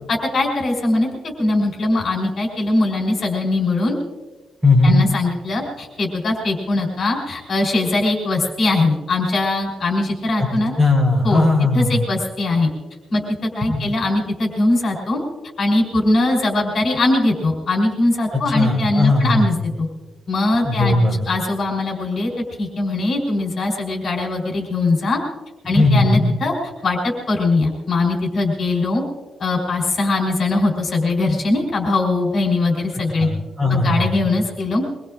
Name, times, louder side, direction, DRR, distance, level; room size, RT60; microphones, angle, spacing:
voice 1, 0.3-4.0 4.8-10.7 11.2-11.4 11.7-12.7 13.1-15.2 15.6-19.9 20.3-21.0 21.3-22.3 22.6-25.2 25.6-26.5 26.8-29.0 29.4-33.3 33.7-34.8, left 2 dB, 40° left, -1 dB, 3.7 m, -21 dB
voice 2, 4.6-5.0 10.4-10.5 10.8-12.0 13.7-13.8 18.3-19.6 20.6-21.2 25.7-26.3 33.2-34.3, left 2 dB, 15° right, 0 dB, 4.2 m, -17 dB
23.5 x 22.0 x 2.5 m, 1.2 s
wide cardioid pair, 170°, 0 cm